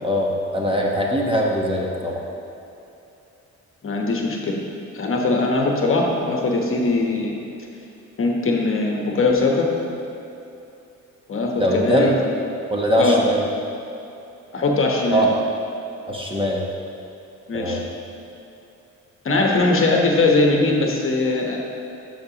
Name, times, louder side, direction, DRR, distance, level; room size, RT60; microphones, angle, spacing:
voice 1, 0.0-2.2 11.6-12.2 12.7-13.4 15.1-15.4 16.1-16.6 17.5-17.8, equal, 15° right, -1 dB, 1.1 m, -21 dB
voice 2, 3.8-4.6 4.9-7.4 8.2-9.7 11.3-12.3 13.0-13.2 14.5-15.3 17.5-17.8 19.2-21.6, left 3 dB, 45° left, 0 dB, 1.1 m, -20 dB
12.0 x 6.0 x 2.9 m, 2.8 s
cardioid pair, 90°, 30 cm